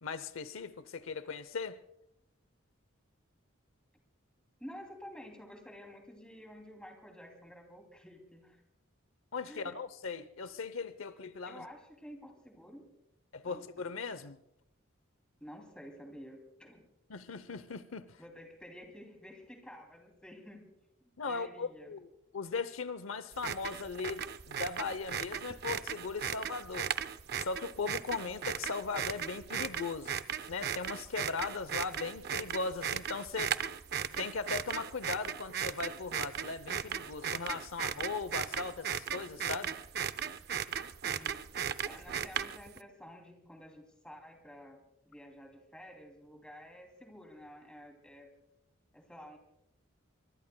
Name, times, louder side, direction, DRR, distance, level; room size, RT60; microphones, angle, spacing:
voice 1, 0.0-1.8 9.3-11.7 13.3-14.4 17.1-18.1 21.2-22.0 22.3-26.9 27.4-30.2 30.5-33.5 34.2-39.8, left 4 dB, 80° left, 0.7 m, -38 dB
voice 2, 4.6-8.6 9.5-9.8 11.5-12.9 13.4-13.9 15.4-16.9 18.2-21.9 41.0-41.5 41.8-48.3 48.9-49.4, equal, 5° left, 2.8 m, -51 dB
sound 1, 23.3-42.8, right 8 dB, 50° right, 0.5 m, -37 dB
24.0 x 24.0 x 2.2 m
head